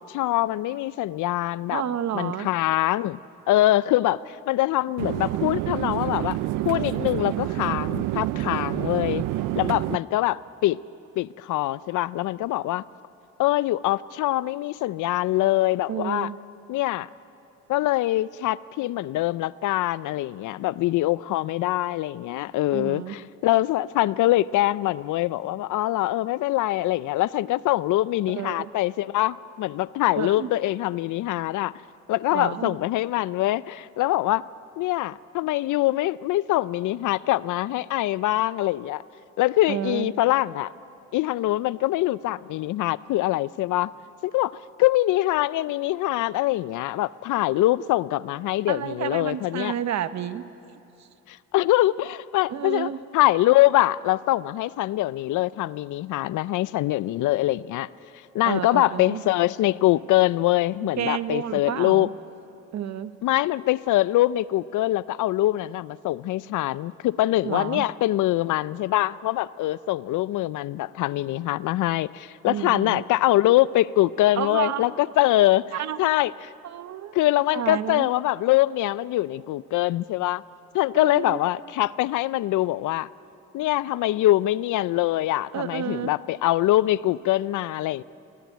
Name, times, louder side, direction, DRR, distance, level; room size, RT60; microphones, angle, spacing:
voice 1, 0.0-1.8 2.1-3.2 3.5-6.4 6.7-9.2 9.5-10.8 11.2-12.8 13.4-16.3 16.7-17.1 17.7-31.7 32.1-34.4 34.8-39.0 39.4-40.7 41.1-43.9 44.2-44.5 44.8-49.7 51.3-52.9 53.1-57.9 58.3-62.1 63.2-75.7 76.0-76.3 77.1-80.4 80.7-83.1 83.5-88.0, left 16 dB, 80° left, 19 dB, 0.5 m, -23 dB
voice 2, 1.7-2.5 15.9-16.4 22.7-23.2 28.3-28.7 30.2-30.5 32.3-32.8 39.7-40.1 48.7-50.5 51.0-51.1 52.5-53.0 58.5-59.2 60.8-62.1 62.7-63.1 67.4-67.9 72.5-73.0 74.3-74.9 75.7-76.1 76.6-77.2 77.5-78.1 80.9-81.4 85.5-86.1, right 10 dB, 65° right, 12 dB, 1.0 m, -30 dB
sound 1, 5.0-10.0, right 16 dB, 90° right, 0.5 m, -28 dB
24.0 x 17.5 x 9.3 m, 2.7 s
cardioid pair, 90°, 30 cm